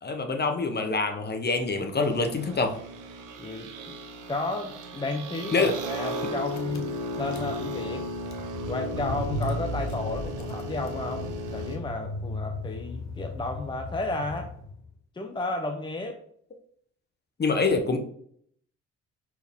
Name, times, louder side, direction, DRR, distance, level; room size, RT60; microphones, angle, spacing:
voice 1, 0.0-2.7 5.5-5.7 17.4-18.0, left 3 dB, 35° left, 6 dB, 1.1 m, -25 dB
sound 1, 2.0-11.8, equal, 85° right, 1.1 m, -36 dB
voice 2, 3.4-4.0 4.3-8.1 8.7-14.5 15.1-16.2, left 2 dB, 15° left, 3 dB, 0.7 m, -33 dB
Car / Engine, 6.5-14.9, left 1 dB, 65° left, 1.1 m, -36 dB
5.8 x 4.7 x 3.6 m, 0.64 s
cardioid pair, 90°, 30 cm